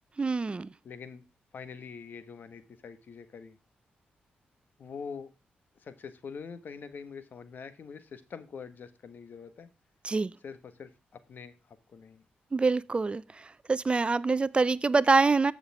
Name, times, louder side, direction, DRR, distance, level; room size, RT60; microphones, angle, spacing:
voice 1, 0.2-0.7 10.0-10.3 12.5-15.5, right 4 dB, 30° right, 0.5 m, -25 dB
voice 2, 0.8-1.2 1.5-3.6 4.8-5.3 5.8-9.7 10.4-12.2, left 6 dB, 65° left, 1.4 m, -44 dB
14.0 x 6.8 x 3.5 m
cardioid pair, 70°, 3 cm